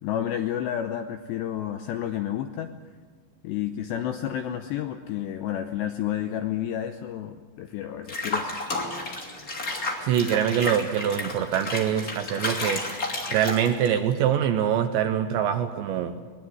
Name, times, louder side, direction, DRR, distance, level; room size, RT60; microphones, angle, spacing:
voice 1, 0.0-2.8 3.4-8.5, left 10 dB, 80° left, 6 dB, 2.5 m, -30 dB
Water / Bathtub (filling or washing), 8.1-14.0, left 2 dB, 25° left, 1.8 m, -32 dB
voice 2, 10.0-12.8 13.3-16.2, right 9 dB, 75° right, 8 dB, 2.7 m, -24 dB
22.0 x 20.5 x 7.9 m, 1.4 s
omnidirectional pair, 6.0 m